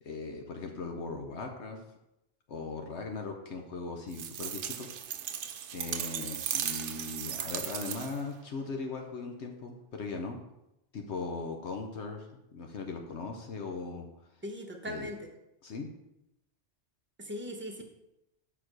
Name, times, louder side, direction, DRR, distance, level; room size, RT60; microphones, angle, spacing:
voice 1, 0.0-1.8 2.5-4.9 5.7-10.4 10.9-14.1 14.9-15.1 15.6-15.9, left 4 dB, 70° left, 3 dB, 1.1 m, -39 dB
sound 1, 4.1-8.3, right 9 dB, 85° right, 0.9 m, -36 dB
voice 2, 14.4-15.3 17.2-17.8, equal, 10° right, 0 dB, 1.1 m, -39 dB
6.1 x 5.0 x 6.1 m, 0.88 s
omnidirectional pair, 1.2 m